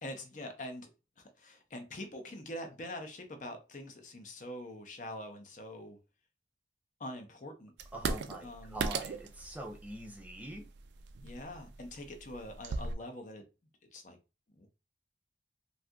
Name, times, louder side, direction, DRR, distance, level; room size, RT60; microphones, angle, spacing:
voice 1, 0.0-0.9 1.2-6.0 7.0-7.7 8.4-8.8 11.2-13.4 13.9-14.2 14.6-14.7, left 1 dB, 45° left, 5 dB, 0.6 m, -44 dB
sound 1, 7.8-12.9, right 4 dB, 75° right, 0.4 m, -39 dB
voice 2, 7.9-10.6, right 1 dB, 10° right, 1 dB, 0.4 m, -44 dB
2.7 x 2.4 x 3.4 m, 0.30 s
head